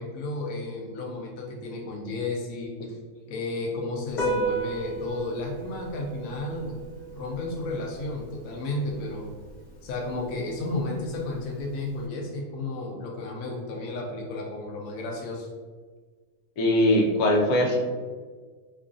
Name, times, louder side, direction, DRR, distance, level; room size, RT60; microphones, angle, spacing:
voice 1, 0.0-3.0 3.3-6.8 7.1-9.3 9.8-15.5, left 2 dB, 70° left, -1 dB, 1.0 m, -33 dB
Piano, 4.1-12.1, right 2 dB, 45° left, 0.6 m, -35 dB
voice 2, 16.6-17.8, left 1 dB, 90° left, 0 dB, 1.2 m, -21 dB
3.1 x 2.4 x 3.7 m, 1.5 s
omnidirectional pair, 1.5 m